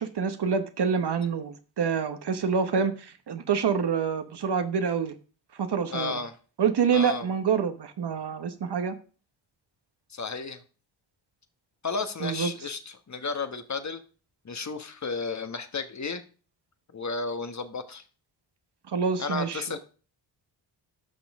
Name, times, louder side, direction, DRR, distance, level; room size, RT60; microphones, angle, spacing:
voice 1, 0.0-5.1 5.6-6.2 6.6-9.0 12.2-12.5 18.9-19.8, right 6 dB, 55° right, 9 dB, 1.1 m, -27 dB
voice 2, 5.9-6.4 6.9-7.3 10.1-10.6 11.8-14.0 14.4-16.2 16.9-18.0 19.2-19.8, left 4 dB, 35° left, 9 dB, 1.3 m, -33 dB
10.5 x 6.1 x 3.6 m, 0.38 s
supercardioid pair, 45°, 50 cm